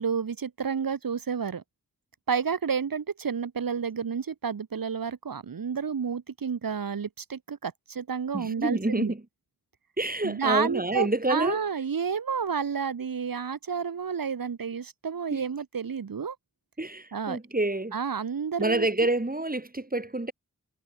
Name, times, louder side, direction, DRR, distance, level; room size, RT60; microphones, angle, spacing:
voice 1, 0.0-1.6 2.3-9.1 10.2-16.4 17.1-17.4 17.9-18.9, right 6 dB, 90° right, 4.1 m, -30 dB
voice 2, 8.3-9.2 10.0-11.6 15.3-15.4 16.8-18.0 18.6-20.3, right 2 dB, 25° right, 7.8 m, -28 dB
cardioid pair, 50°, 33 cm